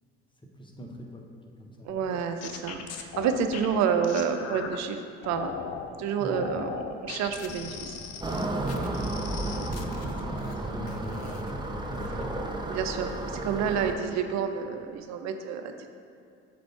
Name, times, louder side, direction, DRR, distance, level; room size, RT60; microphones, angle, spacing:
voice 1, 0.6-1.2 1.6-2.1 6.2-6.6 8.7-12.3, equal, 15° left, 1 dB, 1.1 m, -42 dB
voice 2, 1.8-5.5 6.0-8.0 9.5-9.6 12.7-15.7, right 7 dB, 65° right, 7 dB, 0.6 m, -29 dB
sound 1, 1.9-4.8 5.2-5.9 6.3-10.5 10.9-11.5 11.9-12.3, left 7 dB, 55° left, 0.6 m, -39 dB
sound 2, 8.2-13.9, right 2 dB, 15° right, 0.8 m, -32 dB
7.6 x 2.6 x 5.7 m, 2.4 s
hypercardioid pair, 60°, 30 cm